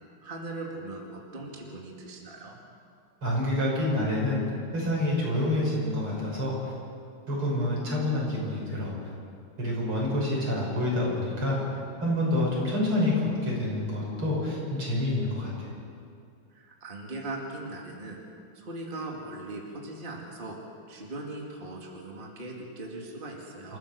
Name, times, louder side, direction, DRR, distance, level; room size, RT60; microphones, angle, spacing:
voice 1, 0.2-2.6 16.5-18.2 18.5-20.6 20.9-23.8, right 2 dB, 25° right, -1 dB, 2.4 m, -39 dB
voice 2, 3.2-4.5 4.7-6.7 7.3-9.1 9.6-15.7 23.7-23.8, left 1 dB, 80° right, -4 dB, 7.1 m, -28 dB
27.5 x 15.0 x 6.8 m, 2.4 s
omnidirectional pair, 2.3 m